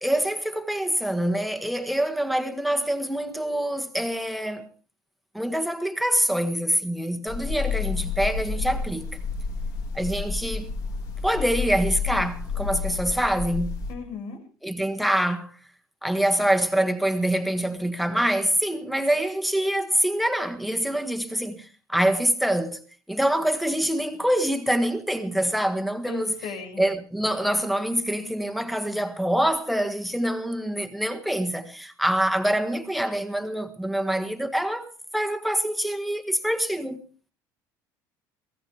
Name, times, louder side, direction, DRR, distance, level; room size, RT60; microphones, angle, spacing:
voice 1, 0.0-4.7 5.3-9.1 9.9-10.7 11.2-13.8 14.6-15.5 16.0-22.8 23.1-26.5 26.8-37.0, right 1 dB, ahead, 1.6 m, -25 dB
sound 1, 7.3-13.9, left 5 dB, 55° left, 3.1 m, -30 dB
voice 2, 13.9-14.4 26.1-26.8, left 6 dB, 75° left, 6.0 m, -36 dB
23.0 x 16.0 x 3.4 m
cardioid pair, 145°, 8 cm